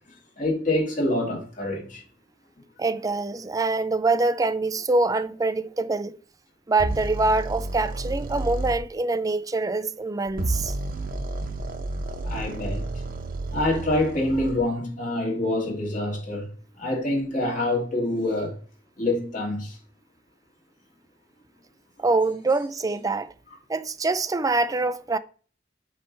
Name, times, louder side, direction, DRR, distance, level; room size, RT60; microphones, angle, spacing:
voice 1, 0.4-2.0 12.2-12.9 13.5-16.5 16.8-18.5 19.0-19.8, left 1 dB, 45° left, 2.4 m, -26 dB
voice 2, 2.8-6.2 6.7-10.7 22.0-23.3 23.7-25.2, right 3 dB, 20° right, 0.4 m, -24 dB
sound 1, 6.8-8.8 10.3-14.6, right 2 dB, 50° right, 0.9 m, -31 dB
8.5 x 3.3 x 5.4 m
head